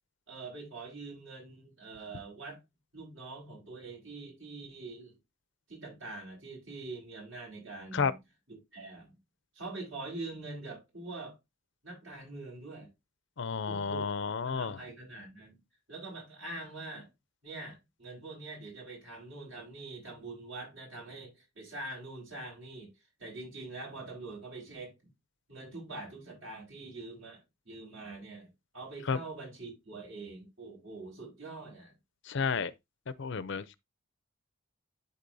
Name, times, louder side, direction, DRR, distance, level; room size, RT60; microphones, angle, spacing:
voice 1, 0.3-2.6 2.9-5.2 5.7-8.1 8.5-9.2 9.5-11.4 11.8-12.9 13.7-14.1 14.4-15.6 15.9-17.1 17.4-22.9 23.2-25.0 25.5-31.9, right 2 dB, 70° right, 4.8 m, -44 dB
voice 2, 13.4-14.8 29.1-29.2 32.3-32.7 33.2-33.8, left 5 dB, 60° left, 0.5 m, -31 dB
11.5 x 4.1 x 2.6 m
head